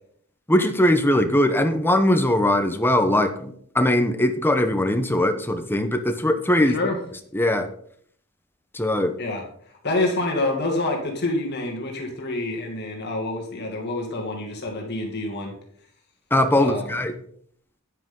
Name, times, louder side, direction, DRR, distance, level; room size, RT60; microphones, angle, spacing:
voice 1, 0.5-6.7 7.3-7.7 8.7-9.1 16.3-17.1, left 1 dB, 10° left, 8 dB, 0.9 m, -20 dB
voice 2, 6.6-7.0 9.2-9.4 9.8-15.5 16.6-17.0, left 2 dB, 50° left, 0 dB, 2.3 m, -27 dB
10.0 x 9.9 x 3.9 m, 0.62 s
head